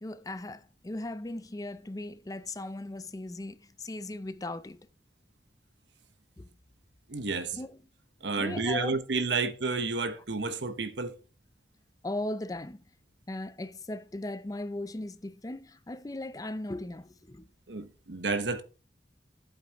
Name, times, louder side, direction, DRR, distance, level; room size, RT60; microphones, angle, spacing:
voice 1, 0.0-4.9 6.4-6.5 7.5-7.8 8.4-9.0 12.0-12.8 13.3-17.5, left 1 dB, 20° left, 0.5 m, -38 dB
voice 2, 7.1-7.6 8.2-11.2 17.7-18.6, right 3 dB, 90° right, 1.1 m, -31 dB
12.0 x 8.0 x 3.0 m
head